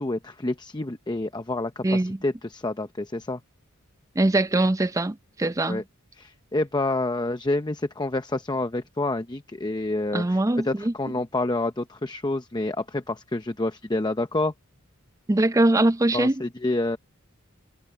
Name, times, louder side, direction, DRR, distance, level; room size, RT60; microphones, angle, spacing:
voice 1, 0.0-3.4 5.7-5.8 6.2-14.5 16.1-17.0, left 2 dB, 20° left, 0.8 m, -28 dB
voice 2, 1.8-2.2 4.2-5.8 10.1-10.9 15.3-16.4, right 2 dB, 15° right, 0.5 m, -22 dB
head